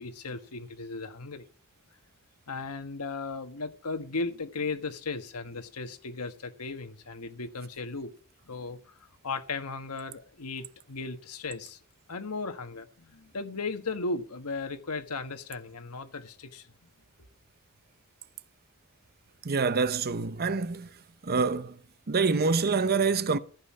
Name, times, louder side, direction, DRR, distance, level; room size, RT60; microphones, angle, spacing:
voice 1, 0.0-1.4 2.5-8.1 8.4-11.8 12.1-16.9, left 3 dB, 85° left, 1.4 m, -36 dB
voice 2, 19.4-20.9 21.2-21.8 22.1-23.4, right 4 dB, 45° right, 0.7 m, -26 dB
15.0 x 5.5 x 8.6 m
head